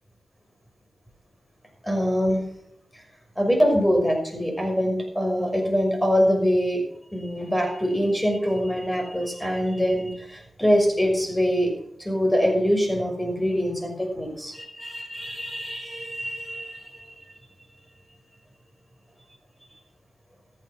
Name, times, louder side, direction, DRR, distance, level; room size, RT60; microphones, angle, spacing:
voice 1, 1.8-2.5 3.4-6.8 7.1-11.7 12.0-17.2, equal, 10° left, 1 dB, 6.1 m, -24 dB
14.0 x 9.3 x 6.0 m, 0.74 s
cardioid pair, 60°, 0 cm